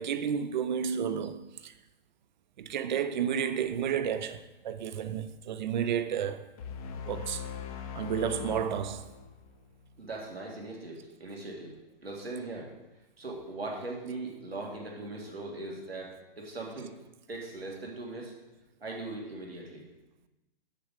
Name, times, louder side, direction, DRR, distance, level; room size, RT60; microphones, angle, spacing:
voice 1, 0.0-1.7 2.6-6.5 7.0-7.5 7.9-9.1, right 8 dB, 50° right, 0.6 m, -31 dB
sound 1, 6.6-9.9, left 6 dB, 40° left, 0.8 m, -40 dB
voice 2, 10.0-11.7 12.0-12.7 13.2-16.9 17.3-18.3 18.8-19.8, right 2 dB, 85° right, 2.1 m, -40 dB
7.1 x 6.7 x 5.0 m
figure-of-eight pair, 130°, 29 cm